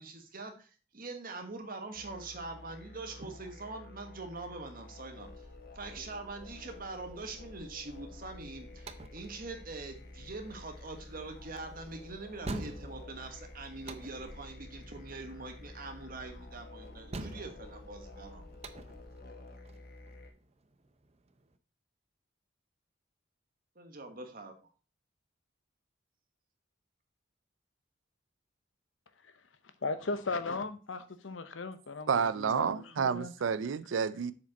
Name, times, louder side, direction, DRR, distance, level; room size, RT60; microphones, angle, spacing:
voice 1, 0.0-5.5 5.7-18.4 23.7-24.5, right 3 dB, 50° right, 1.4 m, -44 dB
sound 1, 1.9-20.3, left 2 dB, 50° left, 1.2 m, -51 dB
sound 2, 5.2-19.2, left 1 dB, ahead, 2.6 m, -56 dB
sound 3, 8.3-21.6, right 2 dB, 35° right, 0.6 m, -46 dB
voice 2, 29.8-33.3, left 3 dB, 80° left, 0.8 m, -37 dB
voice 3, 32.1-34.3, right 6 dB, 80° right, 0.4 m, -30 dB
7.2 x 5.1 x 4.1 m
head